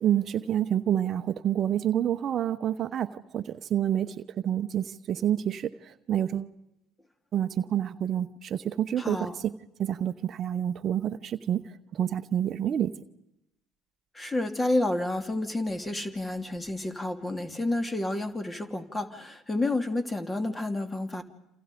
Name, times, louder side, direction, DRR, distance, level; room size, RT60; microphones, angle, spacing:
voice 1, 0.0-6.6 7.3-9.5 9.8-12.9, right 10 dB, 50° right, 12 dB, 0.9 m, -28 dB
voice 2, 9.0-9.4 14.1-21.2, left 2 dB, 20° left, 8 dB, 2.7 m, -30 dB
28.5 x 27.5 x 5.2 m, 0.87 s
hypercardioid pair, 65°, 0 cm